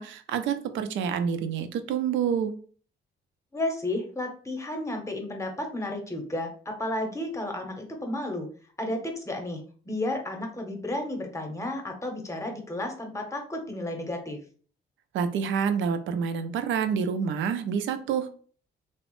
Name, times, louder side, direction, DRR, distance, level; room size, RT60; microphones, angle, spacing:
voice 1, 0.0-2.5 15.1-18.3, right 7 dB, 75° right, 9 dB, 0.4 m, -28 dB
voice 2, 3.5-8.5 8.8-14.4, left 1 dB, 15° left, 3 dB, 0.8 m, -32 dB
2.9 x 2.0 x 3.0 m, 0.43 s
cardioid pair, 90°, 20 cm